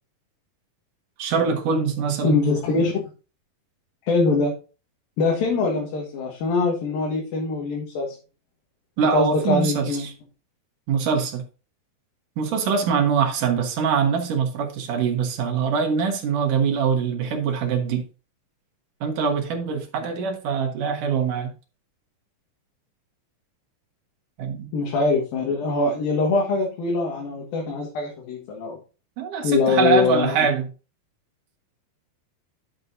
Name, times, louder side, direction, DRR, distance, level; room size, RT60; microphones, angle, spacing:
voice 1, 1.2-2.4 9.0-10.1 10.9-11.4 12.4-18.0 19.0-21.5 24.4-24.7 29.2-30.7, right 6 dB, 70° right, 2.7 m, -23 dB
voice 2, 2.2-3.0 4.0-4.5 5.2-8.2 9.1-10.1 24.7-28.8 29.4-30.4, left 3 dB, 80° left, 3.3 m, -23 dB
10.5 x 6.7 x 2.6 m
omnidirectional pair, 4.1 m